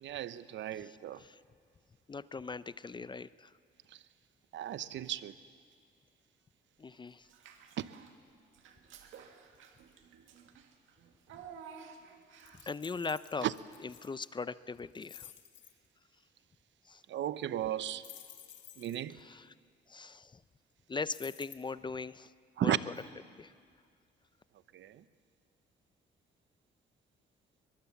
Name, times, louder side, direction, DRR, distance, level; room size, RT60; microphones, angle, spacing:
voice 1, 0.0-1.2 3.9-4.0 4.5-5.3 7.8-7.9 13.4-13.5 17.1-18.1 18.8-19.2 22.6-22.8 24.7-25.0, right 11 dB, 70° right, 15 dB, 0.8 m, -35 dB
voice 2, 0.8-1.4 2.1-3.5 6.8-7.3 12.7-13.5 13.8-15.3 16.9-17.0 19.1-19.5 19.9-20.4 20.9-22.3 22.6-22.9 23.4-23.5, left 4 dB, 25° left, 16 dB, 0.5 m, -40 dB
Child speech kid speaking / Bathtub (filling or washing), 7.2-8.2 8.5-12.8, right 7 dB, 85° right, 1.9 m, -53 dB
sound 1, 12.4-14.3 14.8-15.7 18.0-19.1 21.1-21.5, left 9 dB, 70° left, 1.8 m, -52 dB
22.5 x 21.5 x 7.1 m, 2.1 s
cardioid pair, 90°, 20 cm